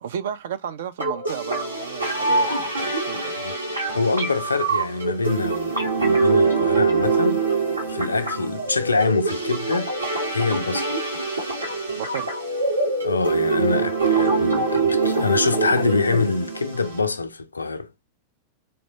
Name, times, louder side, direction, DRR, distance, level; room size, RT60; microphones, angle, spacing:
voice 1, 0.0-3.4 12.0-12.3, right 8 dB, 60° right, 0.4 m, -33 dB
sound 1, 1.0-17.0, right 4 dB, 80° right, 1.0 m, -24 dB
voice 2, 3.9-7.4 7.9-10.9 13.0-17.9, left 3 dB, 80° left, 0.3 m, -24 dB
3.2 x 2.0 x 2.7 m
figure-of-eight pair, 90°, 0 cm